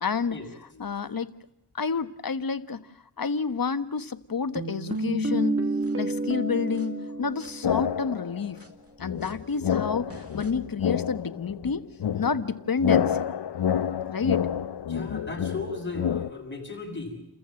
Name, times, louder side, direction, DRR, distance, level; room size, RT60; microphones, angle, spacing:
voice 1, 0.0-0.4 0.8-1.3 1.8-2.9 3.2-5.6 6.0-8.6 9.0-11.8 12.1-13.3 14.1-14.5, left 5 dB, 55° left, 11 dB, 1.4 m, -29 dB
sound 1, 4.6-8.2 8.6-8.7 9.2-9.3 10.1-10.5, right 2 dB, 35° right, 2.5 m, -30 dB
sound 2, 7.6-8.5 9.0-16.3, left 8 dB, 70° left, 0.8 m, -28 dB
voice 2, 14.9-17.2, left 3 dB, 25° left, 1 dB, 7.8 m, -35 dB
29.5 x 14.5 x 7.7 m, 0.85 s
wide cardioid pair, 70°, 43 cm